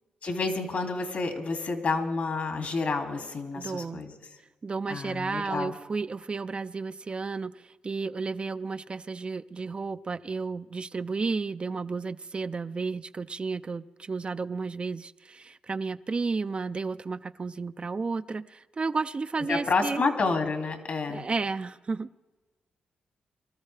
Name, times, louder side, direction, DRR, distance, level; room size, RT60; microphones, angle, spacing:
voice 1, 0.2-4.1 4.9-5.7 19.5-21.3, left 3 dB, 60° left, 4 dB, 2.4 m, -29 dB
voice 2, 3.5-4.0 4.6-20.0 21.1-22.1, right 4 dB, 35° right, 12 dB, 0.4 m, -32 dB
24.0 x 13.5 x 3.3 m, 1.2 s
cardioid pair, 70°, 3 cm